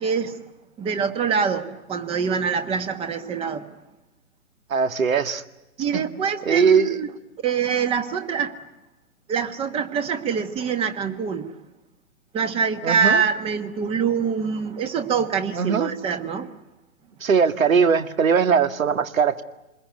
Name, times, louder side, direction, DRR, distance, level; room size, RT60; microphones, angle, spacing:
voice 1, 0.0-0.4 0.8-3.7 5.8-7.1 7.4-8.6 9.3-11.5 12.3-16.5, right 6 dB, 15° right, 10 dB, 1.3 m, -25 dB
voice 2, 4.7-5.4 5.9-6.0 6.5-7.0 12.8-13.2 15.5-15.9 17.2-19.4, right 6 dB, 65° right, 10 dB, 2.1 m, -20 dB
27.5 x 21.0 x 9.4 m, 0.98 s
hypercardioid pair, 140°, 43 cm